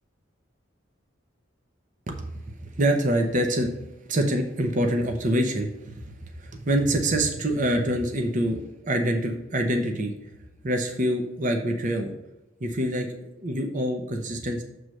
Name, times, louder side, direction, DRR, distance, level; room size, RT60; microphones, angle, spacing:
voice 1, 2.1-3.8 4.1-10.3 10.6-12.1 12.6-14.6, right 1 dB, 40° right, 4 dB, 0.7 m, -26 dB
7.7 x 3.2 x 6.2 m, 1.0 s
head